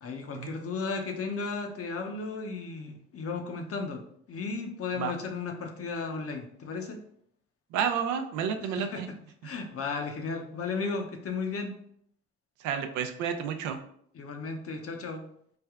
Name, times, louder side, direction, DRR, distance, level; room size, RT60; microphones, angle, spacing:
voice 1, 0.0-7.0 8.6-9.0 9.4-11.8 14.2-15.2, left 4 dB, 50° left, 4 dB, 0.7 m, -35 dB
voice 2, 7.7-9.1 12.6-13.8, right 7 dB, 85° right, 7 dB, 0.5 m, -31 dB
3.3 x 2.2 x 3.4 m, 0.66 s
supercardioid pair, 65°, 29 cm